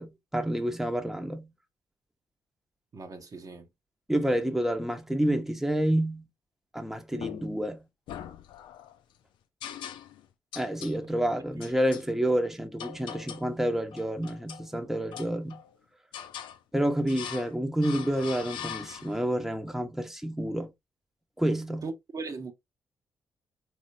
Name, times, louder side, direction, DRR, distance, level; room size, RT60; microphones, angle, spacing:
voice 1, 0.0-1.5 4.1-6.3 6.7-7.8 10.6-15.6 16.7-20.7 21.4-21.9, right 1 dB, 5° right, 0.9 m, -29 dB
voice 2, 2.9-3.6 21.8-22.5, right 4 dB, 45° right, 0.9 m, -38 dB
sound 1, 7.1-7.7 8.1-9.0 9.6-10.3 10.5-11.0 11.6-12.1 12.8-13.5 13.9-14.7 15.1-15.7 16.1-16.6 17.1-17.5 17.8-19.3, left 9 dB, 75° left, 0.5 m, -41 dB
4.0 x 3.2 x 2.6 m
hypercardioid pair, 45°, 8 cm